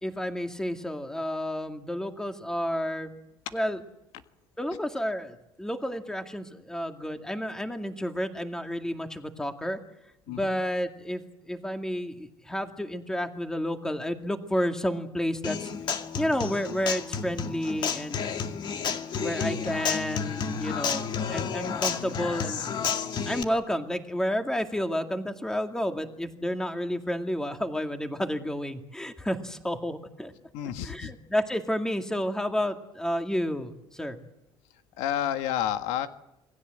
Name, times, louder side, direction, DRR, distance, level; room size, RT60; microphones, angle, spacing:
voice 1, 0.0-3.1 3.5-3.8 4.6-9.8 10.3-15.7 16.2-18.3 18.8-22.6 23.3-30.3 30.8-34.2, equal, 5° left, 6 dB, 2.2 m, -31 dB
Human voice / Acoustic guitar, 15.4-23.4, left 6 dB, 45° left, 2.2 m, -31 dB
voice 2, 30.5-31.1 35.0-36.1, left 10 dB, 90° left, 9 dB, 1.6 m, -30 dB
27.5 x 20.0 x 7.8 m, 0.90 s
cardioid pair, 135°, 11 cm